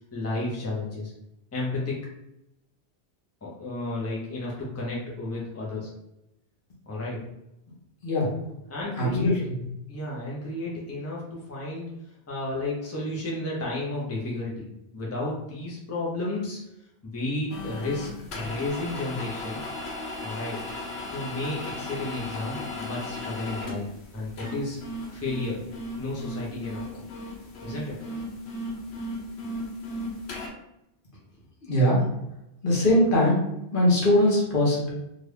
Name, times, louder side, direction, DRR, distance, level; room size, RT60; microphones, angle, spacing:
voice 1, 0.1-1.1 1.5-2.1 3.4-5.9 6.9-7.2 8.7-9.4 9.9-11.9 12.3-14.7 14.9-16.6 17.0-19.6 20.2-20.6 21.1-24.8 25.1-25.6 26.0-27.0 27.6-28.0, left 2 dB, 15° left, -5 dB, 0.7 m, -32 dB
voice 2, 9.0-9.3 31.7-32.0 32.6-33.4 33.7-34.9, left 1 dB, 55° left, -4 dB, 1.1 m, -21 dB
sound 1, 17.5-30.5, left 1 dB, 75° left, 1.0 m, -36 dB
2.9 x 2.5 x 3.3 m, 0.85 s
omnidirectional pair, 1.1 m